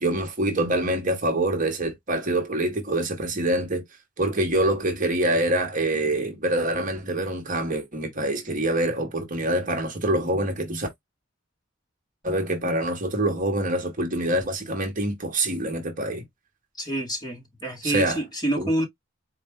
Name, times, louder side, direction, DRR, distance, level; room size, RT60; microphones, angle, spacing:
voice 1, 0.0-3.8 4.2-10.9 12.2-16.2 17.8-18.2 18.6-18.7, right 1 dB, 40° right, 1.1 m, -25 dB
voice 2, 16.8-18.8, right 1 dB, 20° left, 2.0 m, -27 dB
4.3 x 2.5 x 3.6 m
head